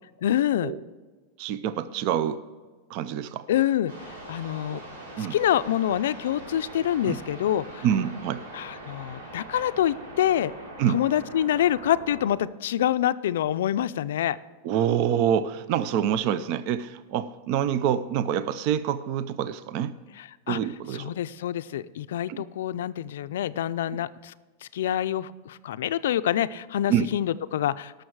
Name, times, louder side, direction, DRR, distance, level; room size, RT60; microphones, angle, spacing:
voice 1, 0.2-0.7 3.5-4.8 5.2-7.8 8.5-10.5 10.9-14.4 20.2-20.6 20.9-24.3 24.6-27.9, left 11 dB, 80° left, 14 dB, 0.4 m, -26 dB
voice 2, 1.4-2.4 2.9-3.5 4.7-4.8 5.2-5.4 7.1-7.2 7.8-8.4 10.8-11.0 14.6-20.0 20.5-21.1 22.3-22.4 26.9-27.1, right 9 dB, 40° right, 14 dB, 0.4 m, -26 dB
sound 1, 3.9-12.4, right 1 dB, 75° right, 3.7 m, -42 dB
18.5 x 6.4 x 4.7 m, 1.3 s
supercardioid pair, 170°, 0 cm